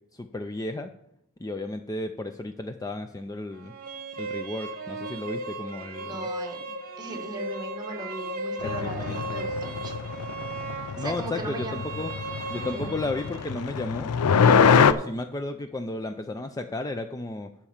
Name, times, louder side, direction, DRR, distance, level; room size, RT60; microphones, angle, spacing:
voice 1, 0.1-0.9 1.4-3.7 4.2-6.3 8.6-9.2 11.0-12.1 12.5-14.1 14.5-17.5, left 2 dB, 15° left, 7 dB, 0.4 m, -33 dB
sound 1, 3.5-13.5, right 2 dB, 40° right, 1.2 m, -36 dB
voice 2, 6.0-6.7 7.0-9.9 11.0-11.8 12.5-13.0, right 2 dB, 20° right, 2 dB, 1.4 m, -37 dB
sound 2, 8.6-14.9, left 6 dB, 90° left, 0.5 m, -24 dB
12.0 x 4.4 x 7.2 m, 0.78 s
head